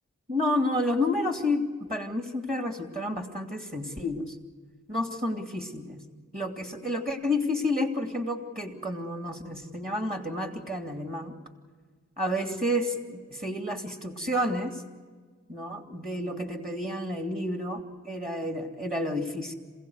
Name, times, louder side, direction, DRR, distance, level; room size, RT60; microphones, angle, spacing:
voice 1, 0.3-1.6 1.9-4.4 4.9-6.0 6.3-11.3 12.2-14.8 15.5-19.6, left 1 dB, 30° right, 4 dB, 2.7 m, -30 dB
27.5 x 16.5 x 8.1 m, 1.5 s
cardioid pair, 40°, 30 cm